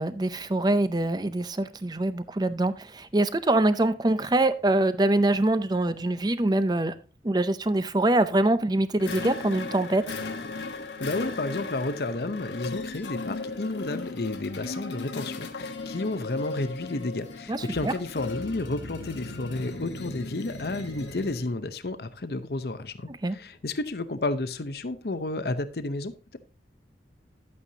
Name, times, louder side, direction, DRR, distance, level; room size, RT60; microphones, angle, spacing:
voice 1, 0.0-6.9 7.2-10.0 17.5-17.9 23.2-23.4, right 2 dB, 25° right, 0.6 m, -24 dB
sound 1, 9.0-21.5, left 3 dB, 90° left, 1.3 m, -37 dB
voice 2, 11.0-26.4, left 2 dB, 60° left, 0.7 m, -31 dB
11.0 x 8.5 x 2.8 m
head